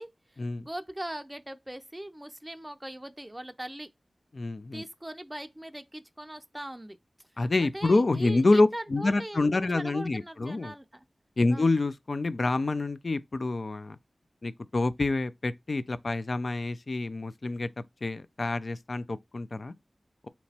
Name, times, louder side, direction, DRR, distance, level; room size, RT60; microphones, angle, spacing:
voice 1, 0.0-3.9 4.7-7.3 7.6-11.1 11.5-11.7, right 1 dB, 15° right, 0.4 m, -40 dB
voice 2, 4.3-4.8 7.4-10.7 11.4-14.0 14.4-17.7 18.0-19.7, left 2 dB, 60° left, 0.3 m, -27 dB
4.3 x 2.9 x 2.8 m
wide cardioid pair, 55°, 0 cm